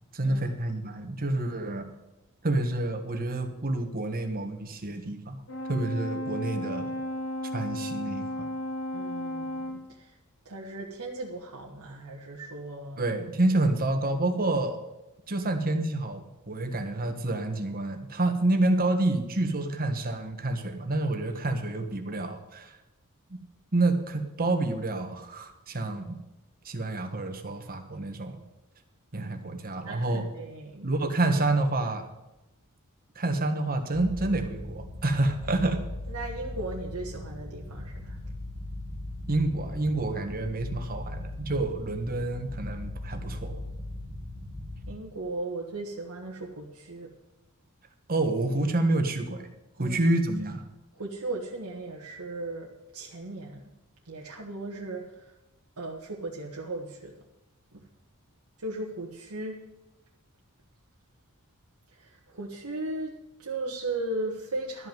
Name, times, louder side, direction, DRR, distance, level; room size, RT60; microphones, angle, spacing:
voice 1, 0.1-1.9 2.4-5.4 5.7-7.0 7.5-8.5 13.0-14.8 15.3-22.7 23.7-26.2 26.6-28.4 29.1-30.2 30.8-32.1 33.1-35.8 39.3-43.6 48.1-49.5 49.8-50.6, right 2 dB, 40° right, 6 dB, 1.5 m, -28 dB
Brass instrument, 5.5-9.9, left 1 dB, 70° left, 2.7 m, -34 dB
voice 2, 8.9-10.2 10.4-13.1 29.1-30.9 36.1-38.2 44.9-47.1 49.8-50.0 50.9-53.6 54.0-55.4 55.8-57.1 57.7-57.8 58.6-59.6 61.9-63.1 63.4-64.9, right 2 dB, 90° right, -2 dB, 1.5 m, -37 dB
sound 1, 33.9-44.9, left 1 dB, 85° left, 4.4 m, -39 dB
12.5 x 5.7 x 9.2 m, 0.98 s
head